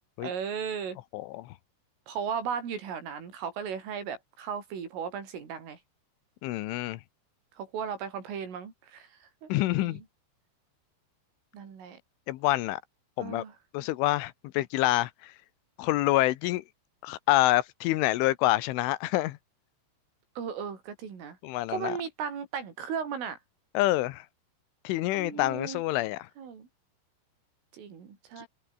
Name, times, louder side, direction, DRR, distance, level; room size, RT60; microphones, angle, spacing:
voice 1, 0.2-1.0 2.1-5.8 7.6-9.5 9.8-10.0 11.5-12.0 13.2-13.5 20.4-21.4 21.7-23.4 25.2-25.8 26.4-26.7 27.7-28.5, right 7 dB, 85° right, 7.4 m, -36 dB
voice 2, 1.1-1.5 6.4-7.0 9.5-10.0 12.3-12.8 13.2-13.4 13.7-15.3 15.8-16.6 17.0-19.4 21.4-22.0 23.7-24.2 24.8-26.3, left 17 dB, 80° left, 3.4 m, -27 dB
omnidirectional pair, 5.6 m